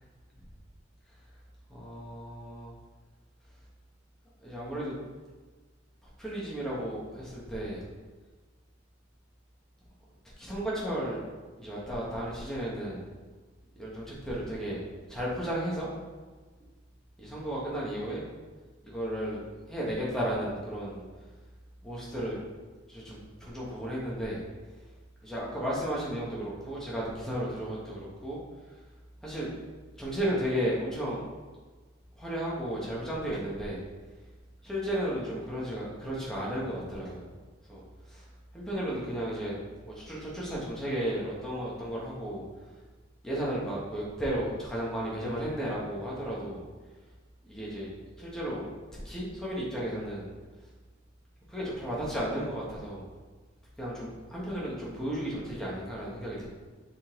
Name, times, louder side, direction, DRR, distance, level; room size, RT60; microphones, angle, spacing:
voice 1, 1.7-2.7 4.4-4.9 6.2-7.8 10.4-11.2 11.6-13.0 13.7-14.8 15.1-15.9 17.2-18.2 18.8-19.4 19.7-21.0 21.8-22.4 22.9-24.4 25.2-28.4 29.2-29.5 30.0-31.2 32.2-33.8 34.6-37.3 37.7-37.8 38.1-38.2 38.5-39.5 39.8-42.4 43.2-46.6 47.5-47.9 48.2-48.6 49.0-50.3 51.5-53.0 53.8-56.5, equal, 5° left, -6 dB, 1.6 m, -34 dB
7.6 x 4.1 x 3.9 m, 1.4 s
head